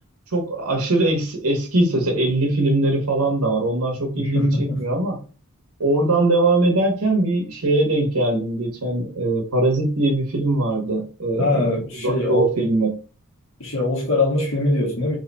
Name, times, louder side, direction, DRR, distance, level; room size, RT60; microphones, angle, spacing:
voice 1, 0.3-5.2 5.8-11.7 11.9-12.9, right 2 dB, 75° right, 1.2 m, -21 dB
voice 2, 4.1-4.8 11.4-12.5 13.6-15.2, left 1 dB, 65° left, 1.6 m, -22 dB
3.4 x 3.4 x 4.2 m
head